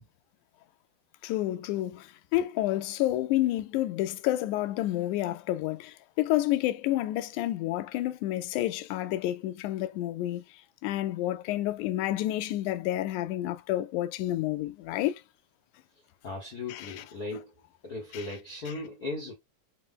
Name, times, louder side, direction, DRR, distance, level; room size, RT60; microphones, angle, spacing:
voice 1, 1.2-10.4 10.8-15.2 16.7-17.0 18.1-18.2, left 14 dB, 85° left, 2.0 m, -29 dB
voice 2, 16.2-17.5 17.8-19.3, left 2 dB, 65° left, 0.9 m, -37 dB
5.5 x 2.1 x 3.6 m
omnidirectional pair, 3.5 m